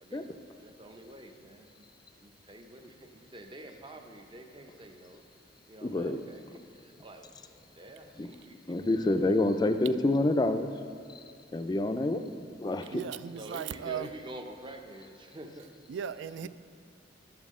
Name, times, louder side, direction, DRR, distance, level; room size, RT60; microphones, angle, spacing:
voice 1, 0.0-1.9 2.2-5.3 5.7-9.3 13.4-15.7, right 1 dB, 25° right, 5 dB, 0.6 m, -48 dB
voice 2, 5.8-6.2 8.2-8.3 8.7-10.7 11.5-12.2 12.6-13.0, left 2 dB, 20° left, 8 dB, 0.4 m, -27 dB
voice 3, 12.9-14.1 15.9-16.5, right 8 dB, 70° right, 15 dB, 0.3 m, -37 dB
12.0 x 7.3 x 3.7 m, 2.4 s
head